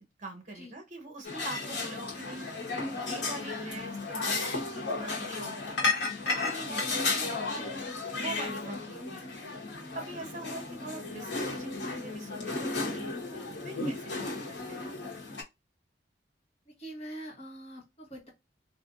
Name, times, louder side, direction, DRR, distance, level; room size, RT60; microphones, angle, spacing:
voice 1, 0.2-2.5 2.9-7.7 8.2-9.3 9.9-14.9, right 2 dB, 45° right, 1.0 m, -43 dB
sound 1, 1.2-15.4, left 3 dB, 80° left, 1.1 m, -34 dB
voice 2, 16.7-18.3, right 1 dB, 35° left, 1.3 m, -44 dB
3.4 x 2.5 x 2.5 m
head